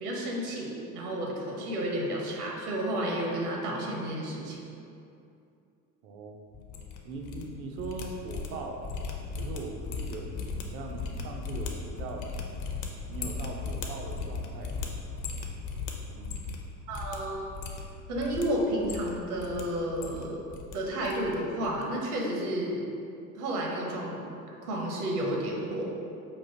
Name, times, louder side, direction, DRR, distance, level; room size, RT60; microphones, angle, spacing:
voice 1, 0.0-4.6 16.9-17.5 18.1-20.4 20.7-22.8 23.3-24.3 24.6-25.9, right 1 dB, 65° right, -1 dB, 0.9 m, -31 dB
voice 2, 6.0-6.7 7.0-8.8 9.4-12.3 13.1-14.8 16.1-16.5, right 3 dB, 30° right, 2 dB, 0.4 m, -40 dB
sound 1, 6.5-7.4 7.7-16.6 16.9-17.2 17.5-18.4 18.8-19.6 19.9-20.7 21.0-21.4 21.6-21.8, left 4 dB, 40° left, 0.5 m, -37 dB
5.3 x 2.4 x 2.8 m, 2.6 s
figure-of-eight pair, 75°, 48 cm